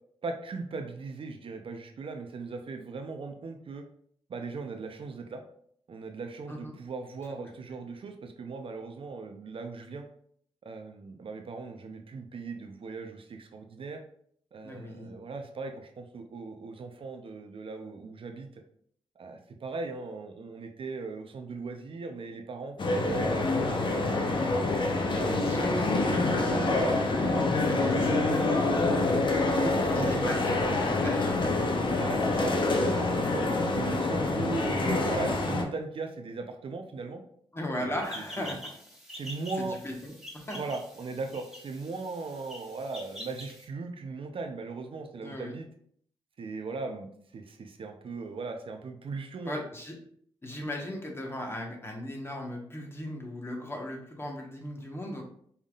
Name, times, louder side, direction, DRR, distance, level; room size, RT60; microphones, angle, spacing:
voice 1, 0.2-3.8 4.3-5.4 5.9-10.1 10.6-14.0 14.5-18.6 19.2-24.5 25.1-29.0 29.5-30.4 31.9-37.2 37.8-38.6 39.1-39.8 40.5-45.7 46.4-49.6, right 4 dB, 55° right, 5 dB, 0.6 m, -38 dB
voice 2, 14.6-15.1 23.1-23.4 25.2-25.7 27.7-28.1 29.8-32.0 33.4-33.5 37.5-38.6 39.6-40.1 40.5-40.6 45.2-45.5 49.4-50.0 50.4-55.2, left 1 dB, 25° left, 1 dB, 1.2 m, -37 dB
sound 1, 22.8-35.6, left 2 dB, 50° left, 0.8 m, -26 dB
sound 2, 38.0-43.7, equal, 5° right, 1.4 m, -46 dB
5.5 x 3.5 x 2.4 m, 0.63 s
cardioid pair, 75°, 11 cm